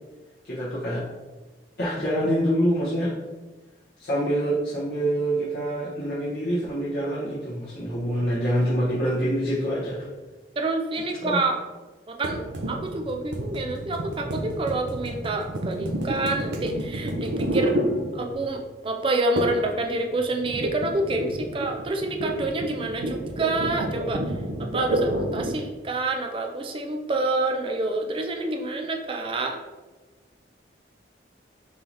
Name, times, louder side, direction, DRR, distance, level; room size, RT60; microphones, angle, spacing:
voice 1, 0.4-1.0 1.8-3.2 4.0-10.1 11.2-11.4, equal, 60° left, -9 dB, 1.2 m, -26 dB
voice 2, 10.6-11.6 12.1-17.8 18.1-24.2 24.6-29.6, right 2 dB, 30° right, 3 dB, 0.4 m, -28 dB
sound 1, 12.2-18.6 19.4-19.7 20.0-25.7, right 1 dB, 80° right, 0.6 m, -29 dB
5.5 x 2.8 x 3.4 m, 1.2 s
head